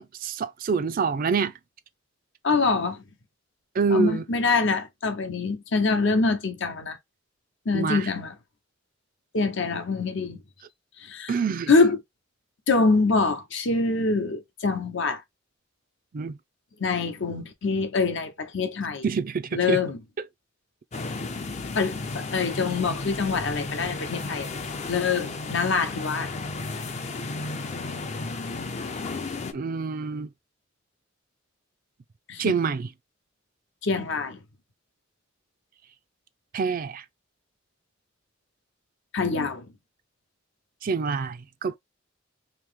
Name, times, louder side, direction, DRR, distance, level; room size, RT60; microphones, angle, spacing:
voice 1, 0.0-1.5 3.7-4.2 7.7-8.1 11.3-11.7 16.1-16.4 19.0-19.8 29.5-30.3 32.4-32.9 36.5-37.0 40.8-41.8, right 5 dB, 45° right, 0.4 m, -26 dB
voice 2, 2.4-3.0 3.9-7.0 7.7-8.3 9.3-10.4 11.0-11.3 11.7-12.0 12.7-15.2 16.8-19.0 19.5-20.0 21.8-24.5 24.9-26.3 32.3-32.5 33.8-34.4 39.1-39.6, left 4 dB, 65° left, 0.8 m, -25 dB
sound 1, 20.9-29.5, left 3 dB, 35° left, 0.5 m, -33 dB
3.0 x 2.8 x 3.5 m
head